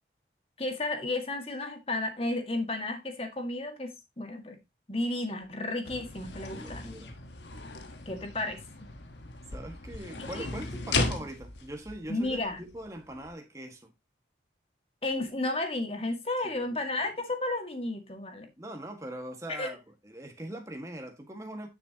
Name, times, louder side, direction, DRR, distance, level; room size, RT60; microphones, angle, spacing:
voice 1, 0.6-4.6 4.9-7.0 8.1-8.6 10.2-10.5 10.9-11.1 12.1-12.6 15.0-18.5 19.5-19.7, left 2 dB, 30° left, 1.8 m, -33 dB
sound 1, 5.8-13.3, left 3 dB, 75° left, 1.3 m, -37 dB
voice 2, 6.5-7.2 8.1-8.3 9.5-13.9 16.4-17.1 18.6-19.8 20.0-21.7, right 1 dB, 15° right, 1.6 m, -42 dB
9.9 x 6.8 x 2.9 m
head